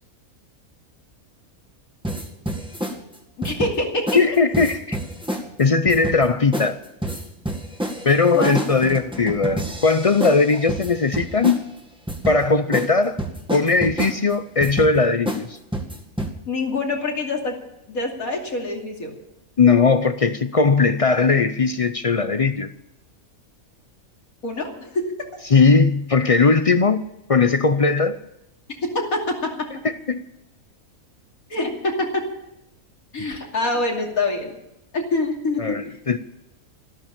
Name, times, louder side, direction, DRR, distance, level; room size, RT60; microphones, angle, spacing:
sound 1, 2.0-3.0 3.4-3.8 4.1-4.3 4.5-5.4 5.9-6.2 6.5-6.7 7.0-11.6 12.1-12.4 12.7-12.9 13.2-14.1 14.6-14.9 15.3-15.4 15.7-16.3, right 1 dB, 5° right, 1.8 m, -28 dB
voice 1, 3.4-4.2 8.3-8.6 16.5-17.6 17.9-19.2 24.4-25.1 28.7-29.7 31.5-32.3 33.1-34.5 34.9-35.8, left 2 dB, 75° left, 3.1 m, -25 dB
voice 2, 4.1-5.0 5.6-6.8 8.0-11.6 12.3-13.2 13.5-15.6 19.6-22.7 25.5-28.2 30.1-30.2 33.2-33.3 35.6-36.2, left 4 dB, 50° left, 0.4 m, -18 dB
13.5 x 12.5 x 7.3 m
omnidirectional pair, 1.5 m